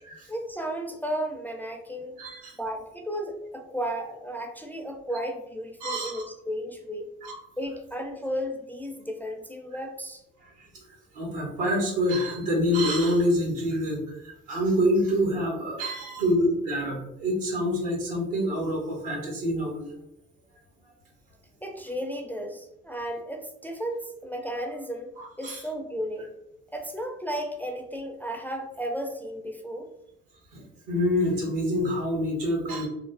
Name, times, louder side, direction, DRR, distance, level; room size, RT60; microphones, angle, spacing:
voice 1, 0.3-2.2 2.6-7.1 7.6-10.2 21.6-25.1 25.4-26.3 26.7-29.9, equal, 5° left, 2 dB, 0.4 m, -34 dB
voice 2, 2.2-2.6 5.8-6.2 7.2-7.3 10.6-10.8 11.1-19.9 25.2-25.6 30.5-32.9, equal, 80° right, -1 dB, 0.9 m, -26 dB
3.0 x 2.0 x 2.4 m, 0.86 s
hypercardioid pair, 45°, 31 cm